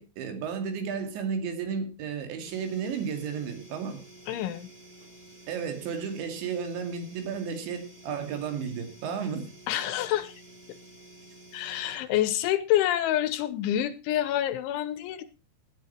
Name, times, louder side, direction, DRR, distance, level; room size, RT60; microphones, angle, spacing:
voice 1, 0.0-4.0 5.5-9.5, right 6 dB, 70° right, 6 dB, 4.6 m, -33 dB
sound 1, 2.4-12.0, right 1 dB, 20° right, 1.6 m, -51 dB
voice 2, 4.3-4.7 9.7-10.3 11.5-15.2, left 12 dB, 90° left, 15 dB, 3.4 m, -27 dB
17.0 x 10.0 x 4.4 m, 0.29 s
omnidirectional pair, 5.4 m